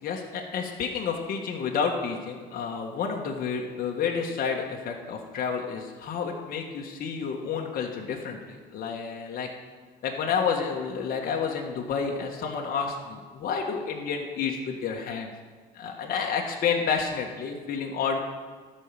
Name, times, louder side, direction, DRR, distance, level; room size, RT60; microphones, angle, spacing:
voice 1, 0.0-9.5 10.0-15.3 15.7-18.2, left 6 dB, 60° left, 0 dB, 1.6 m, -30 dB
12.0 x 5.7 x 7.4 m, 1.5 s
cardioid pair, 110°, 17 cm